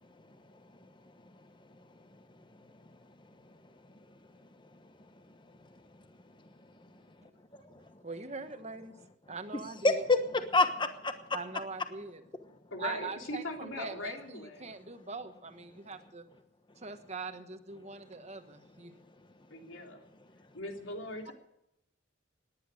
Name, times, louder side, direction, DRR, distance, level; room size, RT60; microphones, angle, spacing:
voice 1, 0.3-0.9 1.2-1.3 2.6-3.0 3.5-3.6 4.4-4.9 5.3-5.4 5.7-6.0 6.6-8.0 9.8-11.2, left 2 dB, 25° left, 1.2 m, -32 dB
voice 2, 8.0-8.9 9.3-10.0 11.3-12.2 12.8-16.3 16.8-18.9 21.3-21.4, right 4 dB, 35° right, 1.3 m, -42 dB
voice 3, 12.7-14.7 19.5-20.0 20.5-21.3, left 2 dB, 90° left, 3.2 m, -40 dB
19.0 x 10.5 x 6.4 m
head